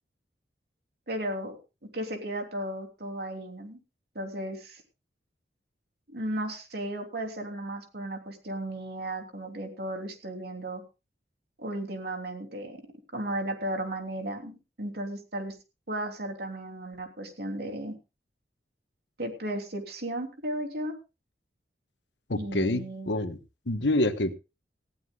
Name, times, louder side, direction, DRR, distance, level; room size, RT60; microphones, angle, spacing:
voice 1, 1.1-1.6 1.8-3.8 4.1-4.8 6.1-10.8 11.6-12.8 13.1-15.5 15.9-18.0 19.2-20.9 22.4-23.1, right 1 dB, 60° right, 4 dB, 3.3 m, -35 dB
voice 2, 22.3-23.4 23.7-24.3, left 1 dB, 80° left, 10 dB, 1.2 m, -27 dB
19.0 x 15.0 x 2.4 m, 0.29 s
head